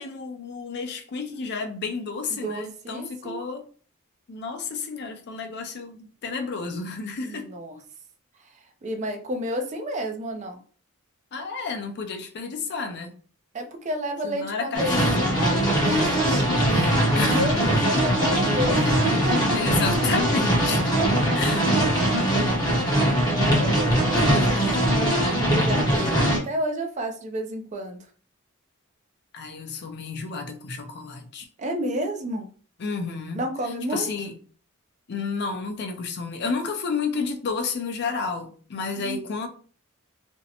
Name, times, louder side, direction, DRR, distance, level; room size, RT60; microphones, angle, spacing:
voice 1, 0.0-3.6 4.3-7.5 11.3-13.1 14.2-15.5 17.1-17.7 19.5-20.9 21.3-21.8 24.2-24.8 26.0-26.2 29.3-31.5 32.8-33.4 33.9-34.3 35.1-39.5, left 4 dB, 50° left, 0.4 m, -31 dB
voice 2, 2.3-3.5 7.2-7.8 8.8-10.6 13.5-19.6 21.0-21.2 22.2-22.6 23.2-28.0 31.6-32.5 33.4-34.1 39.0-39.2, equal, 35° right, 0.4 m, -31 dB
sound 1, 14.7-26.4, equal, 20° left, 0.8 m, -21 dB
2.5 x 2.0 x 2.7 m
head